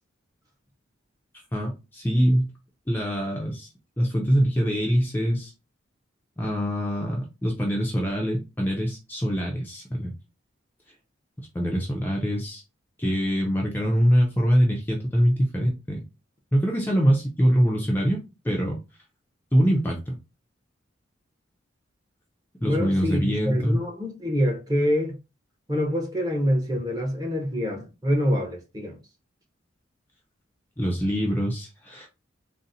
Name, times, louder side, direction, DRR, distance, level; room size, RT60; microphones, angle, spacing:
voice 1, 1.5-2.5 2.9-3.7 4.0-5.5 6.4-10.1 11.5-12.6 13.0-16.0 16.5-18.2 18.4-18.8 19.5-20.1 22.6-23.8 30.8-32.1, equal, 10° left, 0.4 m, -24 dB
voice 2, 22.6-25.2 25.7-29.0, equal, 20° right, 0.7 m, -25 dB
3.9 x 2.0 x 2.6 m
head